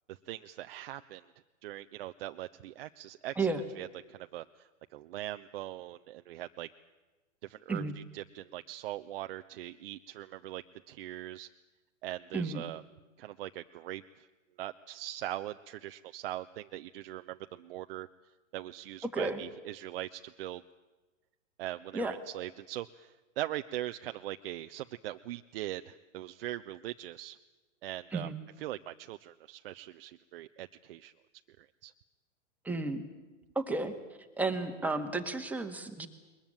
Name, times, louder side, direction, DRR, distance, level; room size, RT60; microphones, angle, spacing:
voice 1, 0.1-1.3 1.6-6.7 7.4-11.5 12.0-12.8 13.2-14.3 14.6-18.1 18.5-20.6 21.6-27.4 27.8-28.3 28.6-31.1 31.6-31.9, right 14 dB, 45° right, 8 dB, 0.7 m, -41 dB
voice 2, 32.6-33.1 33.6-33.9 34.4-36.1, right 3 dB, 5° right, 4 dB, 1.8 m, -32 dB
22.0 x 21.0 x 9.0 m, 1.2 s
hypercardioid pair, 130°, 39 cm